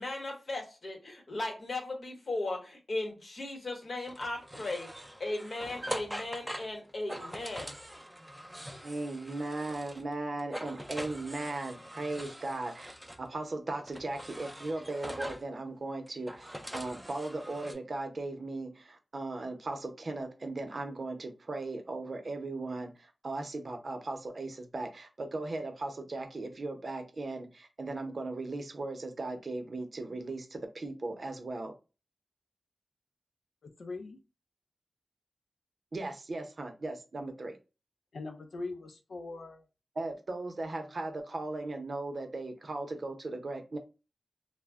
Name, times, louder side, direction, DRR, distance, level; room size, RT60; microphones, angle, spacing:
voice 1, 0.0-4.9 5.2-7.7, left 2 dB, 60° left, 1.0 m, -37 dB
sound 1, 4.1-10.1 10.4-13.2 13.9-15.5 16.1-17.7, equal, 5° right, 0.4 m, -43 dB
voice 2, 8.8-31.7 35.9-37.6 40.0-43.8, right 2 dB, 60° right, 0.6 m, -37 dB
voice 3, 33.8-34.2 38.1-39.6, left 3 dB, 85° left, 0.5 m, -41 dB
2.1 x 2.0 x 3.4 m
cardioid pair, 55°, 0 cm